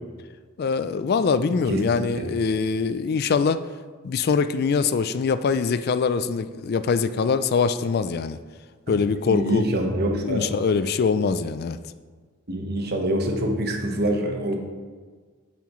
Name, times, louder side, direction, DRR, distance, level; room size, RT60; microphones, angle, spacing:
voice 1, 0.6-3.6 4.0-8.4 8.9-9.7 10.2-11.8, left 5 dB, 50° left, 12 dB, 0.3 m, -23 dB
voice 2, 1.5-1.8 2.2-2.3 8.9-9.0 9.3-10.5 12.5-14.6, right 1 dB, 50° right, 3 dB, 1.2 m, -25 dB
9.2 x 8.6 x 3.1 m, 1.5 s
head